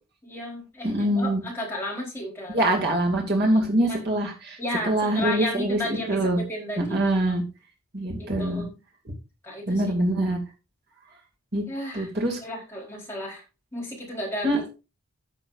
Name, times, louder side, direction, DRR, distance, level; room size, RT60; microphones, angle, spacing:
voice 1, 0.2-2.6 3.4-4.1 4.6-7.3 8.2-8.7 9.4-9.8 11.7-12.1 12.4-13.4 13.7-14.5, left 1 dB, 10° left, -4 dB, 4.1 m, -34 dB
voice 2, 0.8-1.4 2.5-4.6 4.8-6.4 6.8-7.4 7.9-8.6 9.7-10.4 11.5-11.6 11.9-12.4 14.4-14.7, right 1 dB, 50° right, 0 dB, 2.5 m, -24 dB
14.5 x 7.0 x 2.6 m, 0.29 s
head